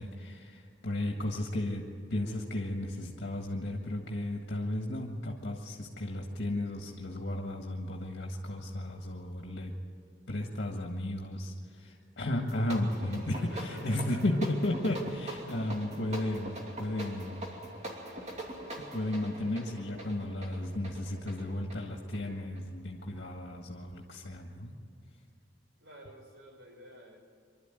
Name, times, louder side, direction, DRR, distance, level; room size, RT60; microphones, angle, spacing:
voice 1, 0.0-9.8 10.3-17.5 18.8-24.8, left 1 dB, 70° left, 1 dB, 1.8 m, -34 dB
sound 1, 12.4-22.7, right 1 dB, 40° right, 2.9 m, -43 dB
voice 2, 13.1-14.4 25.8-27.2, right 1 dB, 85° right, 3 dB, 4.5 m, -50 dB
25.0 x 12.5 x 9.1 m, 2.4 s
head